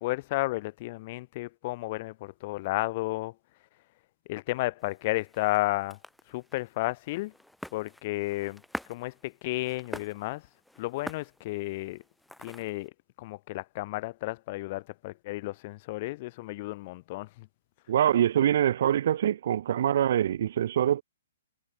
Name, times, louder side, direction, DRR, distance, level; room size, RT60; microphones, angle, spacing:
voice 1, 0.0-3.3 4.3-6.0 6.3-7.3 7.7-8.6 8.9-10.5 10.8-12.0 12.4-12.9 13.2-17.5, left 20 dB, 45° left, 0.7 m, -32 dB
sound 1, 4.8-12.9, left 1 dB, ahead, 1.5 m, -46 dB
voice 2, 17.9-21.0, right 10 dB, 60° right, 0.4 m, -24 dB
hypercardioid pair, 130°, 0 cm